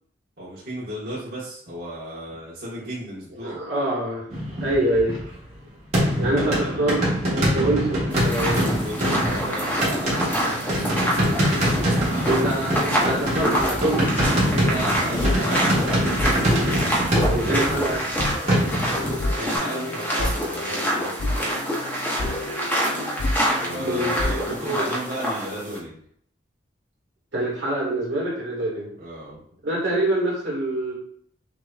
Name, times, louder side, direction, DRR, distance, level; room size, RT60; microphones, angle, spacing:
voice 1, 0.4-3.6 6.3-6.8 8.5-12.5 14.5-16.1 19.2-21.6 23.6-26.0 29.0-29.4, right 1 dB, 55° right, -9 dB, 1.5 m, -34 dB
voice 2, 3.4-4.3 4.6-5.1 6.2-7.0 7.3-8.6 12.2-14.1 17.2-18.0 23.8-24.1 24.7-24.9 27.3-28.9 29.6-30.9, right 1 dB, 75° right, -5 dB, 1.8 m, -25 dB
sound 1, 4.3-5.5 5.9-19.6, equal, 40° right, 1.7 m, -24 dB
sound 2, 8.1-25.8, equal, 10° left, 0.8 m, -27 dB
sound 3, 13.3-24.6, left 2 dB, 70° left, 0.4 m, -31 dB
6.0 x 2.8 x 2.4 m, 0.62 s
head